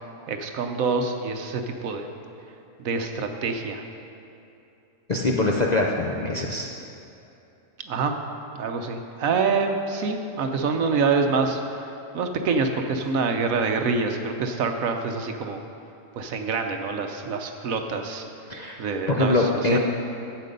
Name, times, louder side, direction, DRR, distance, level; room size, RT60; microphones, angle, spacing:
voice 1, 0.3-2.1 2.8-3.8 7.9-8.2 8.5-15.6 16.2-18.2 18.8-19.4 19.7-19.8, right 4 dB, 65° right, 5 dB, 1.1 m, -26 dB
voice 2, 5.1-6.7 18.5-19.8, left 2 dB, 40° left, -2 dB, 0.6 m, -23 dB
12.0 x 8.3 x 5.2 m, 2.8 s
omnidirectional pair, 1.6 m